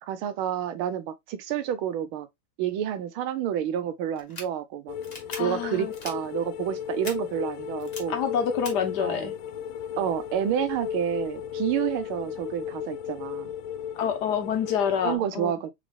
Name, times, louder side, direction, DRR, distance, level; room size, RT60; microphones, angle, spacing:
voice 1, 0.1-2.3 2.6-5.0 5.4-8.2 9.0-9.3 10.0-13.5 15.0-15.7, right 10 dB, 75° right, 1.5 m, -29 dB
sound 1, 4.2-4.4 5.0-5.4 5.9-6.1 7.0-7.1 7.8-8.0 8.6-8.7, left 3 dB, 35° left, 1.3 m, -38 dB
sound 2, 4.9-15.2, left 9 dB, 75° left, 1.3 m, -35 dB
voice 2, 5.4-5.9 8.1-9.3 14.0-15.5, left 7 dB, 60° left, 1.2 m, -27 dB
4.0 x 3.9 x 3.3 m
omnidirectional pair, 2.4 m